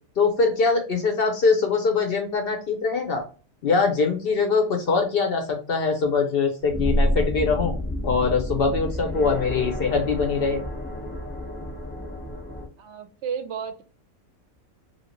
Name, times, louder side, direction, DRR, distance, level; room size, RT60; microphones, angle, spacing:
voice 1, 0.2-3.2 3.6-7.7 8.0-10.6, left 4 dB, 55° left, 4 dB, 0.7 m, -23 dB
sound 1, 6.6-12.7, equal, 10° left, 0.7 m, -29 dB
voice 2, 12.8-13.8, right 7 dB, 65° right, 8 dB, 0.8 m, -33 dB
2.8 x 2.7 x 2.9 m, 0.36 s
omnidirectional pair, 1.5 m